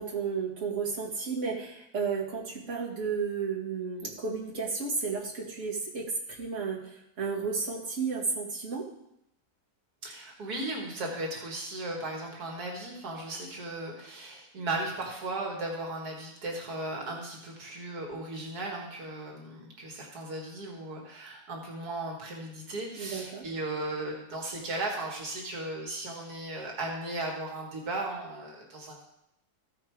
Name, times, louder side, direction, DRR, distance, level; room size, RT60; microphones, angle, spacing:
voice 1, 0.0-8.9 23.0-23.5, right 5 dB, 50° right, -4 dB, 2.2 m, -33 dB
voice 2, 10.0-29.0, right 2 dB, 85° right, 0 dB, 2.2 m, -36 dB
15.0 x 5.0 x 4.7 m, 0.80 s
omnidirectional pair, 1.6 m